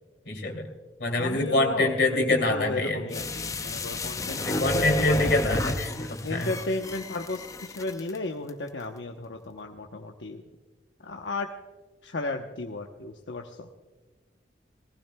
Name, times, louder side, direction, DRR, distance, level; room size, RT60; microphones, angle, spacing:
voice 1, 0.2-0.7 1.0-3.0 4.4-6.5, left 2 dB, 60° left, 3 dB, 2.7 m, -25 dB
voice 2, 1.2-5.4 6.2-10.4 11.0-11.5 12.0-13.7, left 2 dB, 80° left, 2 dB, 0.9 m, -34 dB
sound 1, 3.1-8.2 8.5-8.6, left 1 dB, 20° left, 0.5 m, -31 dB
18.5 x 15.5 x 2.2 m, 1.3 s
head